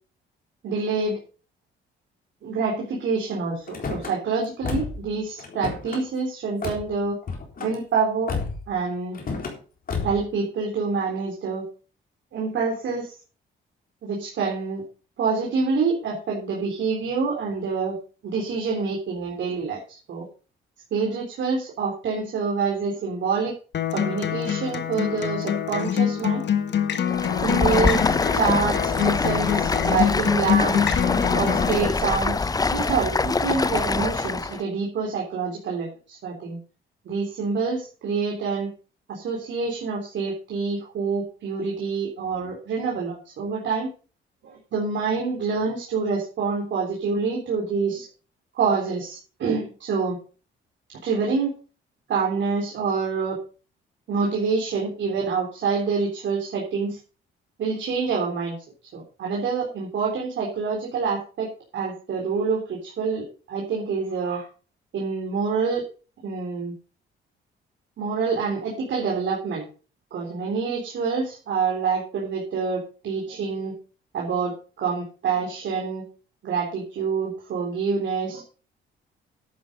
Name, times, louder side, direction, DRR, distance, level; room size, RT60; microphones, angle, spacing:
voice 1, 0.6-1.2 2.4-7.2 7.6-8.4 8.7-9.2 10.0-11.6 12.3-13.1 14.0-14.8 15.2-18.0 18.2-20.3 20.9-23.5 23.9-26.4 27.4-30.9 31.3-36.6 37.1-38.7 39.1-43.9 44.4-48.1 48.5-50.2 51.0-51.5 52.1-53.4 54.1-57.0 57.6-58.6 58.9-64.5 64.9-65.8 66.2-66.7 68.0-69.7 70.1-73.7 74.1-76.0 76.4-78.4, right 5 dB, 65° right, -2 dB, 3.8 m, -26 dB
Car / Slam, 3.7-4.1 4.6-5.1 5.4-6.0 6.6-6.8 7.2-7.7 8.3-8.7 9.1-9.6 9.9-10.3, left 4 dB, 45° left, 3.8 m, -31 dB
Acoustic guitar, 23.7-31.7, left 9 dB, 60° left, 1.4 m, -25 dB
Stream, 27.0-34.6, left 3 dB, 20° left, 0.6 m, -24 dB
11.0 x 8.5 x 5.3 m, 0.37 s
cardioid pair, 90°, 20 cm